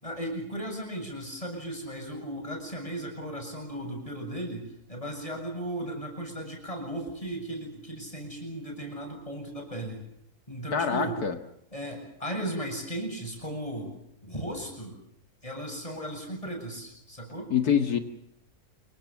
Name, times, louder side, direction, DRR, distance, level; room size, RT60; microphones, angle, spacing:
voice 1, 0.0-4.6 4.9-10.0 10.5-11.2 11.7-13.9 14.2-14.9 15.4-17.5, right 1 dB, 20° left, 2 dB, 8.0 m, -36 dB
voice 2, 10.7-11.4 17.5-18.0, left 8 dB, 85° left, 6 dB, 2.2 m, -25 dB
27.5 x 24.0 x 7.3 m, 0.74 s
omnidirectional pair, 1.6 m